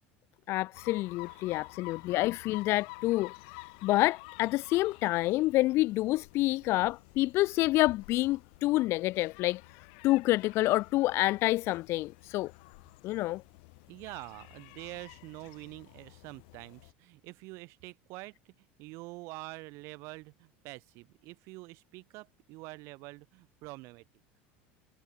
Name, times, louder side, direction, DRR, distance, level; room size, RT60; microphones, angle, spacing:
voice 1, 0.5-3.3 3.8-9.6 10.0-12.5 13.0-13.4, left 18 dB, 55° left, 0.6 m, -28 dB
sound 1, 0.7-16.9, left 31 dB, 75° left, 2.7 m, -51 dB
voice 2, 1.3-1.9 13.9-24.0, right 23 dB, 65° right, 3.9 m, -46 dB
supercardioid pair, 120°, 5 cm